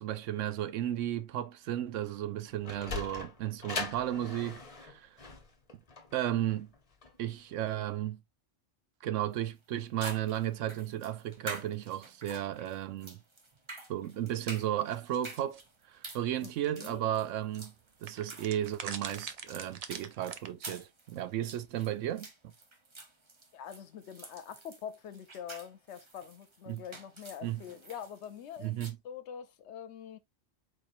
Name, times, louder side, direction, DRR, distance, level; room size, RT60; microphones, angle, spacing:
voice 1, 0.0-5.1 6.1-6.7 7.2-8.2 9.0-13.2 13.9-15.6 15.9-17.7 18.0-22.3 26.7-26.8 27.4-27.6 28.6-29.0, right 12 dB, 90° right, 1.0 m, -34 dB
Sliding door, 2.3-7.5, left 4 dB, 30° left, 1.0 m, -41 dB
sound 1, 9.3-9.4 10.0-28.9, right 2 dB, 25° right, 0.8 m, -48 dB
sound 2, 14.9-15.6 16.6-16.7 16.9-17.0 18.1-20.5, right 6 dB, 50° right, 0.4 m, -42 dB
voice 2, 16.4-17.0 23.5-28.7 29.0-30.2, left 8 dB, 70° left, 1.0 m, -44 dB
4.3 x 4.3 x 2.5 m
omnidirectional pair, 1.2 m